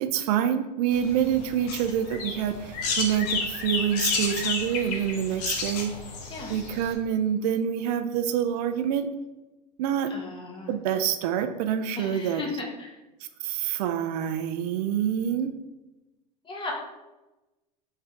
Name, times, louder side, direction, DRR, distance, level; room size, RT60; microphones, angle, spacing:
voice 1, 0.0-5.9 6.5-9.1 9.8-10.1 10.7-12.4 13.4-15.5, right 9 dB, 75° right, 8 dB, 0.4 m, -26 dB
sound 1, 0.9-6.9, left 4 dB, 70° left, 0.9 m, -31 dB
voice 2, 10.1-10.7 12.0-12.9 16.4-16.7, left 3 dB, 25° left, -1 dB, 1.1 m, -36 dB
3.7 x 3.3 x 3.3 m, 1.0 s
hypercardioid pair, 100°, 21 cm